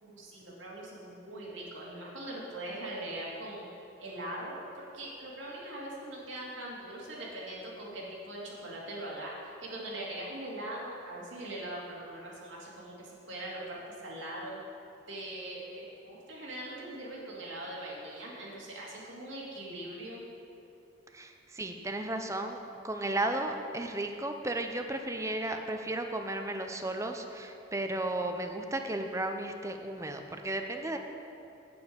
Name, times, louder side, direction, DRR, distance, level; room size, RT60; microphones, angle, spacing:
voice 1, 0.0-3.7 4.0-13.6 14.0-14.6 15.1-20.2, right 1 dB, 80° right, -4 dB, 2.4 m, -41 dB
voice 2, 21.1-31.0, right 1 dB, 15° right, 5 dB, 0.6 m, -34 dB
9.5 x 8.6 x 5.2 m, 2.7 s
head